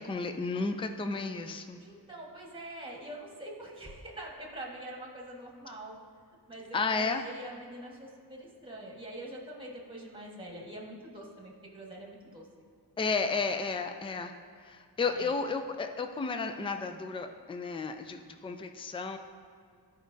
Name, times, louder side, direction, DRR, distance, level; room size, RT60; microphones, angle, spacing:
voice 1, 0.0-1.8 6.7-7.2 13.0-14.3 14.6-19.2, left 4 dB, 15° left, 7 dB, 0.4 m, -32 dB
voice 2, 1.8-6.0 6.5-12.5 15.1-15.3, right 1 dB, 10° right, -2 dB, 1.5 m, -44 dB
12.5 x 5.1 x 2.6 m, 2.2 s
wide cardioid pair, 125°, 42 cm